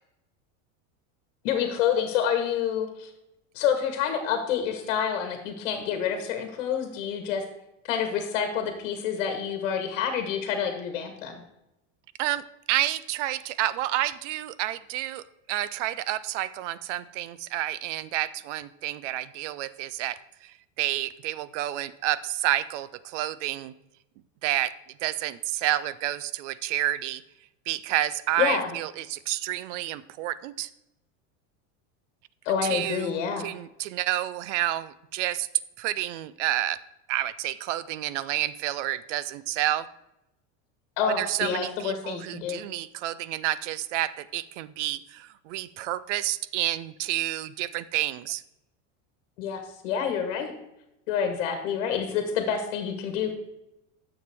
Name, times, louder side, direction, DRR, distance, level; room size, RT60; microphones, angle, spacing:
voice 1, 1.4-3.1 3.5-7.4 7.9-11.4 28.4-28.7 32.4-33.5 41.0-42.6 49.4-50.5 51.1-53.3, left 7 dB, 75° left, 6 dB, 1.3 m, -28 dB
voice 2, 12.2-15.2 15.5-23.7 24.4-24.7 25.0-27.2 27.7-30.7 32.6-35.5 35.8-36.8 37.1-39.9 41.1-48.4, right 14 dB, 70° right, 17 dB, 0.5 m, -29 dB
9.4 x 7.2 x 3.4 m, 0.89 s
supercardioid pair, 175°, 38 cm